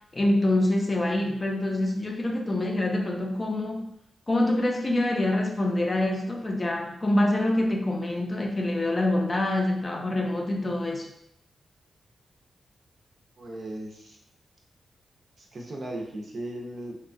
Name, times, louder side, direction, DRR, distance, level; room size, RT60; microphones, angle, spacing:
voice 1, 0.1-3.9 4.3-11.1, left 1 dB, 30° left, 1 dB, 0.4 m, -25 dB
voice 2, 13.4-14.2 15.4-17.0, right 1 dB, 55° right, 0 dB, 0.5 m, -37 dB
2.8 x 2.2 x 2.5 m, 0.76 s
cardioid pair, 95°, 0 cm